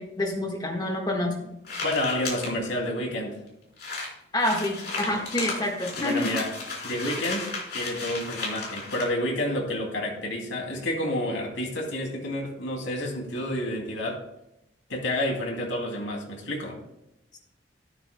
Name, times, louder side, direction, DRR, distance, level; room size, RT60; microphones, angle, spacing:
voice 1, 0.0-1.5 4.3-6.4, left 1 dB, 20° left, 1 dB, 1.5 m, -27 dB
sound 1, 1.6-2.5 3.2-3.3 3.5-3.6 3.8-9.1, left 3 dB, 55° left, 3.9 m, -34 dB
voice 2, 1.8-3.4 6.0-6.5 6.8-7.5 7.7-14.2 14.9-16.8, left 1 dB, 85° left, 1 dB, 2.7 m, -29 dB
13.0 x 12.0 x 2.2 m, 0.84 s
head